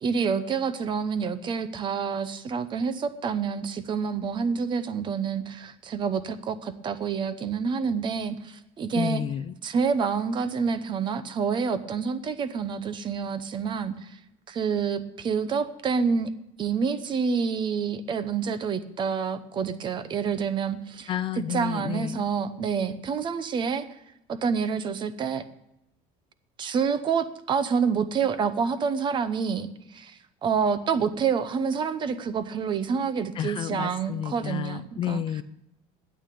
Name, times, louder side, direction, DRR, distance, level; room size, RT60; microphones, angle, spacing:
voice 1, 0.0-9.2 9.6-14.2 14.5-16.3 16.6-21.1 21.5-23.8 24.3-25.5 26.6-35.2, right 6 dB, 30° right, 13 dB, 0.8 m, -28 dB
voice 2, 8.9-9.5 21.1-22.2 33.4-35.4, left 10 dB, 35° left, 12 dB, 0.4 m, -31 dB
12.5 x 8.8 x 6.7 m, 0.84 s
cardioid pair, 170°, 16 cm